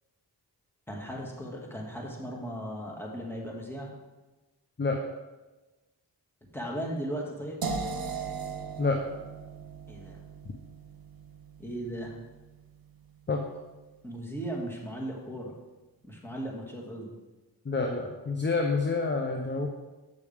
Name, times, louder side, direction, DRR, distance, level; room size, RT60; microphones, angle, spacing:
voice 1, 0.9-3.9 6.5-7.6 9.9-10.2 11.6-12.1 14.0-15.5 16.0-17.2, right 1 dB, 5° left, -2 dB, 2.2 m, -37 dB
sound 1, 7.6-13.5, right 5 dB, 60° right, 1.0 m, -39 dB
voice 2, 17.6-19.7, left 3 dB, 25° left, 2 dB, 0.9 m, -28 dB
8.4 x 6.4 x 3.6 m, 1.1 s
cardioid pair, 40°, 41 cm